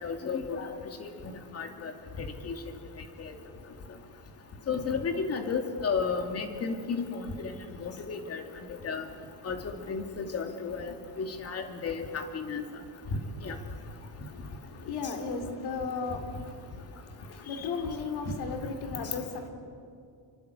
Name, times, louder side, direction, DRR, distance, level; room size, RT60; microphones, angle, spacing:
voice 1, 0.0-0.7 1.0-1.1 1.5-1.9 2.2-2.5 3.2-3.3 4.7-7.5 7.8-8.4 8.8-9.0 9.4-9.6 9.9-12.6 13.4-13.6 18.3-18.4, left 5 dB, 40° left, 5 dB, 2.6 m, -33 dB
voice 2, 14.3-19.5, left 4 dB, 80° left, 5 dB, 3.8 m, -36 dB
27.0 x 24.5 x 8.3 m, 2.3 s
cardioid pair, 175°, 38 cm